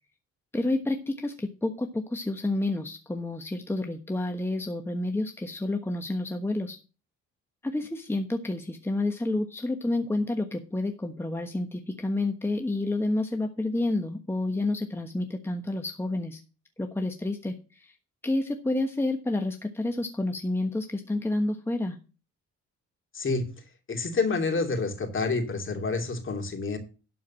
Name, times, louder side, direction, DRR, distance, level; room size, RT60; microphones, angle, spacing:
voice 1, 0.5-6.8 7.6-16.4 16.8-17.9 18.2-22.0, left 2 dB, 10° left, 5 dB, 1.2 m, -29 dB
voice 2, 23.1-23.5 23.9-26.8, left 3 dB, 40° left, 4 dB, 2.8 m, -28 dB
11.5 x 4.7 x 7.3 m, 0.34 s
cardioid pair, 90°, 30 cm